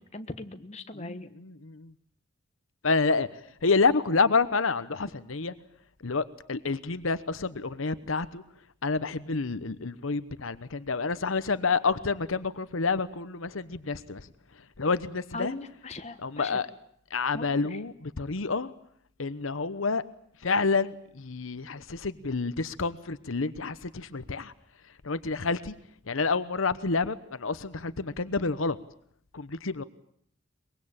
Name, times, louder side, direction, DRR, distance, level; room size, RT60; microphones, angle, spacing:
voice 1, 0.0-1.3 15.3-16.6 17.3-17.5, left 2 dB, 35° left, 8 dB, 1.3 m, -39 dB
voice 2, 0.9-1.9 2.8-3.3 3.6-5.5 6.0-8.4 8.8-14.3 14.8-15.5 16.2-16.7 17.1-18.7 19.2-20.0 20.4-24.5 25.0-25.7 26.1-28.8 29.3-29.8, left 4 dB, 90° left, 14 dB, 1.0 m, -28 dB
23.5 x 21.5 x 8.8 m, 0.68 s
head